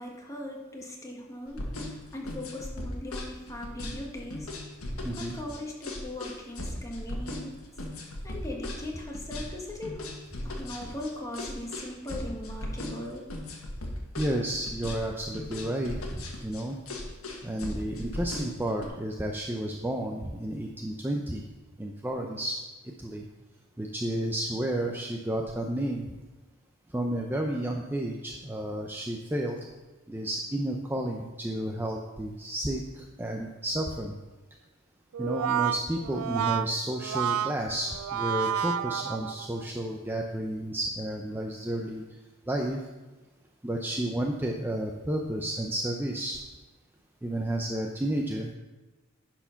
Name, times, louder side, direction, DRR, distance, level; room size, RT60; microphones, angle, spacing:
voice 1, 0.0-4.5 5.1-7.5 8.2-10.0 10.4-13.2, left 1 dB, 15° left, -1 dB, 1.4 m, -39 dB
sound 1, 1.5-18.9, left 1 dB, 75° left, 1.5 m, -37 dB
voice 2, 5.0-5.4 14.2-16.8 17.4-21.4 21.8-22.6 23.0-23.3 23.8-26.0 26.9-29.6 30.1-34.1 35.2-42.0 42.5-42.8 43.6-46.4 47.2-48.5, right 1 dB, 10° right, 1 dB, 0.5 m, -31 dB
Brass instrument, 35.1-39.6, right 9 dB, 90° right, 0.4 m, -30 dB
10.5 x 4.5 x 5.7 m, 1.2 s
head